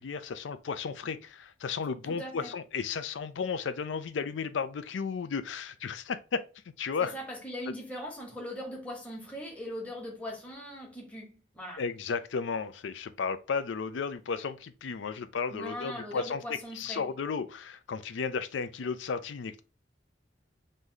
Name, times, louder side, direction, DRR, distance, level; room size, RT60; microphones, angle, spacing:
voice 1, 0.0-6.4 6.8-7.1 11.8-19.6, left 5 dB, 80° left, 0.4 m, -34 dB
voice 2, 2.0-2.5 7.0-11.8 15.5-17.1, equal, 10° left, 1.0 m, -40 dB
3.1 x 2.6 x 3.8 m
head